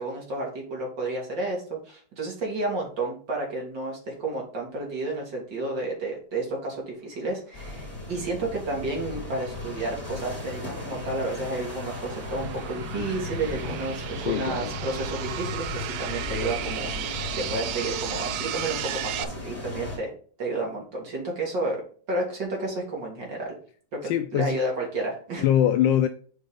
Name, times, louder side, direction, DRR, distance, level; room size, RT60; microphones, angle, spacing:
voice 1, 0.0-20.1 20.4-23.5 23.9-25.4, right 2 dB, 55° right, 3.0 m, -31 dB
sound 1, 7.5-20.0, left 2 dB, 5° left, 3.5 m, -36 dB
sound 2, 8.6-19.2, right 11 dB, 70° right, 1.4 m, -36 dB
voice 2, 14.3-14.7 24.0-24.6 25.4-26.1, left 10 dB, 75° left, 1.1 m, -23 dB
6.7 x 4.5 x 5.1 m
omnidirectional pair, 2.4 m